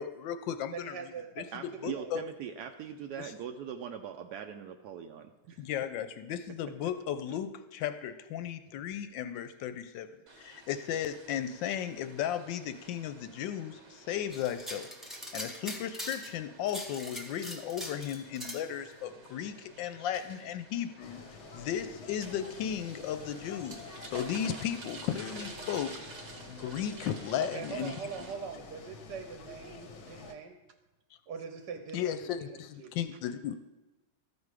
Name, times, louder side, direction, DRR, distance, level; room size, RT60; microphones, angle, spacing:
voice 1, 0.0-1.0 1.4-1.5 1.8-2.2 3.2-3.3 5.6-10.1 10.4-14.9 15.3-21.2 21.5-25.9 26.5-27.9 31.9-33.5, left 9 dB, 75° left, 10 dB, 1.2 m, -35 dB
voice 2, 0.7-1.5 1.9-2.1 27.4-30.6 31.3-32.9, right 6 dB, 65° right, 5 dB, 1.2 m, -42 dB
voice 3, 1.5-5.7, right 8 dB, 85° right, 5 dB, 0.9 m, -41 dB
sound 1, 10.3-28.3, right 3 dB, 45° right, 0.9 m, -51 dB
sound 2, 14.3-16.4 16.7-18.6, equal, ahead, 0.4 m, -42 dB
sound 3, 21.0-30.3, left 3 dB, 50° left, 0.8 m, -49 dB
13.0 x 5.2 x 4.8 m, 1.1 s
omnidirectional pair, 2.3 m